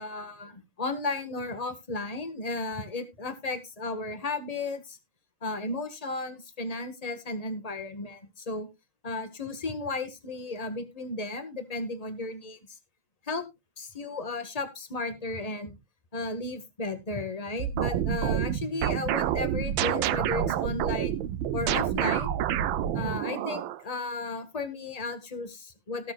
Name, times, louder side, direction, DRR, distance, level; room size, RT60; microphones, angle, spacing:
voice 1, 0.0-5.0 5.4-8.7 9.0-12.8 13.2-13.4 13.8-15.7 16.1-21.2 21.5-22.4 22.9-26.1, left 3 dB, 20° left, 9 dB, 1.7 m, -34 dB
sound 1, 17.6-23.8, right 10 dB, 80° right, 1.5 m, -28 dB
18.0 x 7.5 x 2.4 m, 0.23 s
omnidirectional pair, 2.2 m